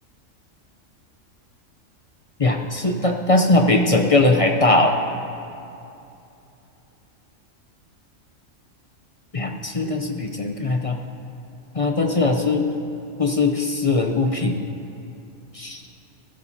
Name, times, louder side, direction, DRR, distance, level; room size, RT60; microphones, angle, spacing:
voice 1, 2.4-4.9 9.3-11.0 11.7-12.7 13.2-14.6 15.5-15.8, left 2 dB, 35° left, 3 dB, 0.6 m, -20 dB
20.5 x 12.5 x 2.8 m, 2.7 s
omnidirectional pair, 1.3 m